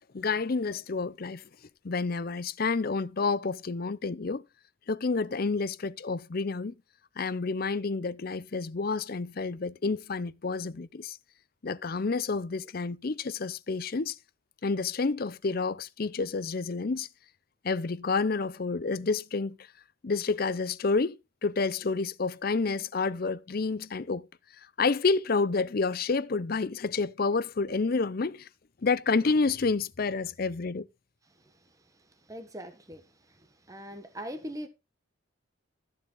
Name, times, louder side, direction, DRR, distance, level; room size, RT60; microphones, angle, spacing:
voice 1, 0.1-1.4 1.8-4.4 4.9-6.7 7.2-11.2 11.6-14.2 14.6-17.1 17.6-19.6 20.0-21.2 21.4-24.3 24.8-28.5 28.8-30.9, left 4 dB, 45° left, 0.5 m, -29 dB
voice 2, 31.3-34.7, equal, 15° right, 1.3 m, -43 dB
13.5 x 7.2 x 3.9 m
head